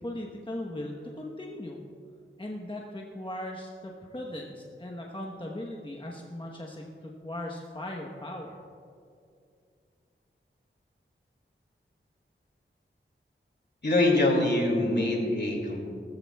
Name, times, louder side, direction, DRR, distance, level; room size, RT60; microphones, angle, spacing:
voice 1, 0.0-1.8 2.4-8.6, left 1 dB, 25° left, -1 dB, 1.1 m, -38 dB
voice 2, 13.8-15.9, left 2 dB, 55° left, 0 dB, 2.6 m, -24 dB
19.0 x 13.5 x 2.3 m, 2.4 s
wide cardioid pair, 75°, 21 cm